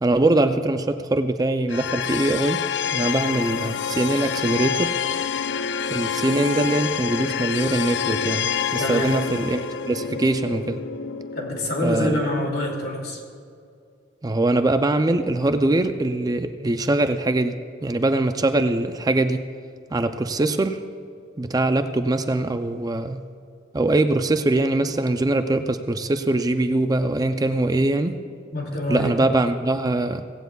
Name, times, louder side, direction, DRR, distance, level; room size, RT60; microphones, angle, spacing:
voice 1, 0.0-2.6 2.9-4.9 5.9-10.8 11.8-12.2 14.2-17.6 17.8-19.4 19.9-20.8 21.4-23.2 23.7-28.1 28.9-30.2, right 2 dB, 20° right, 8 dB, 0.4 m, -22 dB
sound 1, 1.7-12.8, left 7 dB, 80° left, 0.4 m, -28 dB
voice 2, 8.8-9.1 11.4-13.2 28.5-29.3, left 1 dB, 65° left, 0 dB, 2.4 m, -26 dB
17.5 x 16.0 x 2.3 m, 2.3 s
head